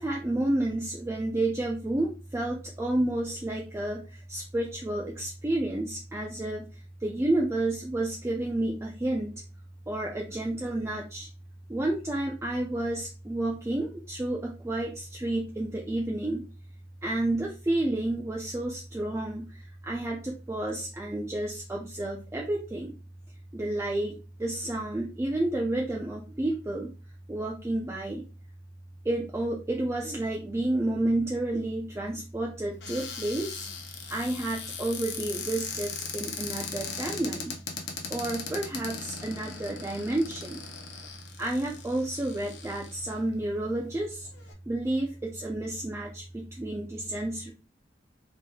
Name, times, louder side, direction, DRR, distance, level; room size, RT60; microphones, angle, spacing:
voice 1, 0.0-9.3 9.9-11.3 11.7-16.4 17.0-22.9 23.5-26.9 27.3-28.2 29.0-33.7 34.1-37.5 38.1-40.6 41.4-44.3 44.7-47.5, right 1 dB, 15° right, -1 dB, 0.4 m, -30 dB
Cupboard open or close, 32.8-43.2 43.8-43.9 44.2-44.5, left 5 dB, 70° left, 0.7 m, -39 dB
3.4 x 2.9 x 2.2 m, 0.33 s
head